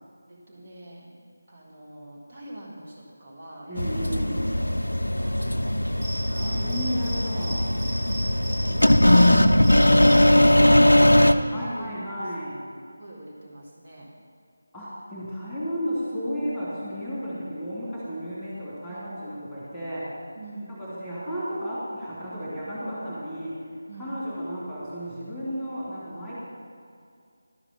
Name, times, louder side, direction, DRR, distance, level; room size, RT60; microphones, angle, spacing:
voice 1, 0.3-1.1 1.5-4.1 4.5-6.6 8.3-12.2 12.9-14.1 18.9-19.1 20.3-20.7 23.9-24.2, right 1 dB, 40° right, -4 dB, 2.1 m, -45 dB
voice 2, 3.7-4.5 6.5-7.8 11.5-12.6 14.7-20.2 20.7-23.6 24.0-26.3, equal, ahead, -10 dB, 2.6 m, -33 dB
sound 1, 3.8-11.3, left 1 dB, 85° left, 0.4 m, -19 dB
Cricket, 6.0-7.2 7.4-7.5 7.8-9.3 9.6-10.1, right 1 dB, 20° right, 2.4 m, -36 dB
12.0 x 4.8 x 5.2 m, 2.3 s
figure-of-eight pair, 160°, 0 cm